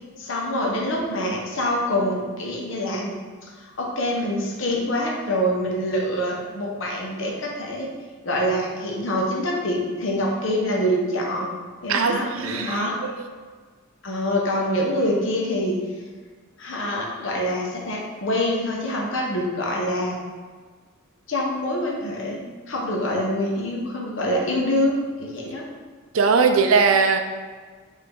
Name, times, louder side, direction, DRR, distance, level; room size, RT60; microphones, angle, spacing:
voice 1, 0.2-3.1 3.8-7.9 8.2-11.5 11.8-13.0 14.0-15.8 16.6-20.2 21.3-25.7, left 1 dB, 65° left, -2 dB, 0.9 m, -25 dB
voice 2, 11.9-13.2 26.1-27.2, right 5 dB, 80° right, 6 dB, 0.4 m, -20 dB
4.9 x 2.7 x 3.6 m, 1.5 s
head